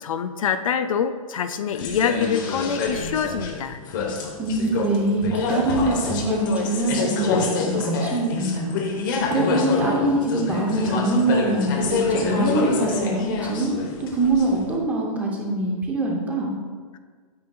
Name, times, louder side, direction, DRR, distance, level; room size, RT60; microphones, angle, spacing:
voice 1, 0.0-3.8, left 7 dB, 65° left, 10 dB, 0.5 m, -25 dB
sound 1, 1.7-14.8, left 4 dB, 35° left, 1.0 m, -26 dB
voice 2, 4.4-13.7 14.0-16.5, right 2 dB, 10° right, -1 dB, 0.7 m, -24 dB
9.5 x 7.5 x 2.3 m, 1.5 s
hypercardioid pair, 165°, 18 cm